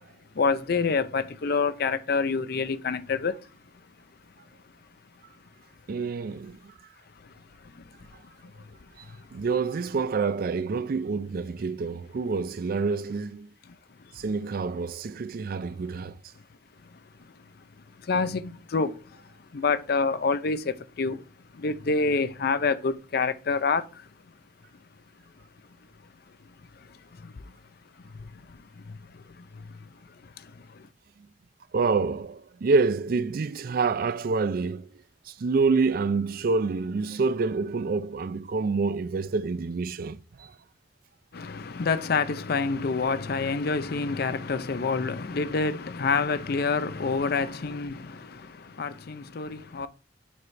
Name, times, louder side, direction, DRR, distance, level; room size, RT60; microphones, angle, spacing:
voice 1, 0.3-3.5 7.2-8.8 9.0-9.4 13.7-14.1 16.8-17.6 18.0-21.3 21.5-24.1 26.4-27.6 28.0-30.9 41.3-49.9, left 4 dB, 55° left, 0.5 m, -29 dB
voice 2, 5.9-6.7 9.0-9.1 9.3-13.5 14.2-16.2 31.7-34.9 35.3-40.5, right 4 dB, 50° right, 0.4 m, -27 dB
7.2 x 3.2 x 4.7 m
head